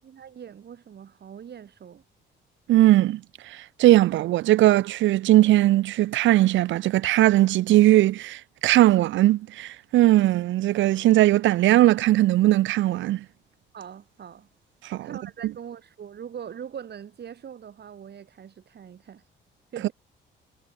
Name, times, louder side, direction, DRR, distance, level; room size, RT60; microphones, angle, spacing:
voice 1, 0.0-2.0 13.7-14.5 15.0-19.2 19.7-19.9, right 8 dB, 55° right, 7.0 m, -42 dB
voice 2, 2.7-3.2 3.5-13.2 14.9-15.1, right 15 dB, 75° right, 0.5 m, -19 dB
cardioid pair, 90°, 20 cm